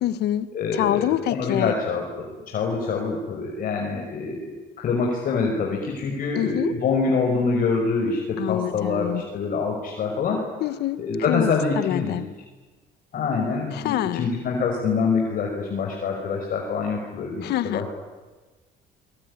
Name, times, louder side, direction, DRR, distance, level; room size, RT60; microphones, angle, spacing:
voice 1, 0.0-0.5 0.8-1.7 6.4-6.7 8.4-9.2 10.6-11.0 11.3-11.5 11.8-12.2 13.8-14.3 17.4-17.9, left 13 dB, 75° left, 14 dB, 1.7 m, -25 dB
voice 2, 0.5-10.4 11.0-12.2 13.1-17.9, left 4 dB, 55° left, 0 dB, 5.8 m, -25 dB
26.0 x 22.5 x 9.9 m, 1.3 s
cardioid pair, 110°, 17 cm